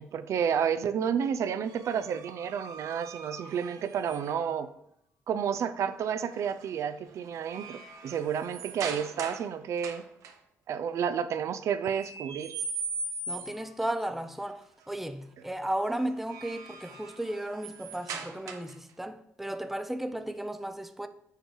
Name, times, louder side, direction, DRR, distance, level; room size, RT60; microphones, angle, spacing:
voice 1, 0.0-4.7 5.3-10.0 10.7-12.6, right 8 dB, 65° right, 0.5 m, -31 dB
sound 1, 1.6-4.5 6.3-6.7 7.1-9.5 9.8-10.3 11.8-13.7 16.0-18.9, right 4 dB, 80° right, 0.9 m, -40 dB
voice 2, 13.3-21.1, right 1 dB, 5° right, 0.5 m, -34 dB
6.7 x 4.6 x 4.7 m
cardioid pair, 100°, 5 cm